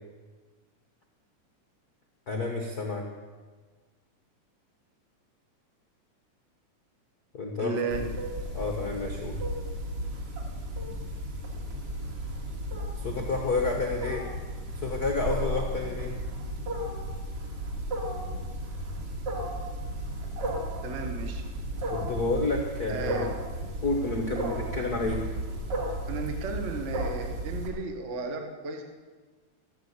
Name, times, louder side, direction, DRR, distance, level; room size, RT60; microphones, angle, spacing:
voice 1, 2.3-3.1 7.3-8.1 8.5-9.4 13.0-14.3 14.8-16.1 21.9-23.2 23.8-25.2 25.8-25.9, left 3 dB, 75° left, 2 dB, 0.8 m, -30 dB
voice 2, 7.6-8.0 20.8-21.4 22.9-23.3 26.1-28.8, right 4 dB, 70° right, 4 dB, 0.6 m, -34 dB
Wild animals, 7.9-27.7, right 1 dB, 45° right, 2.6 m, -34 dB
12.5 x 10.0 x 8.1 m, 1.4 s
omnidirectional pair, 3.8 m